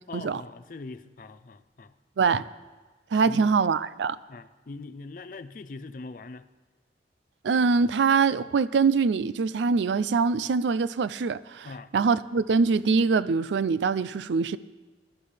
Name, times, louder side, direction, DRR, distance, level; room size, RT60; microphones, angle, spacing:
voice 1, 0.1-1.9 3.1-3.4 4.3-6.5 11.6-11.9, left 3 dB, 50° left, 12 dB, 0.4 m, -42 dB
voice 2, 3.1-4.2 7.4-11.7 11.9-14.6, right 5 dB, 90° right, 16 dB, 0.4 m, -23 dB
18.5 x 11.5 x 3.4 m, 1.3 s
head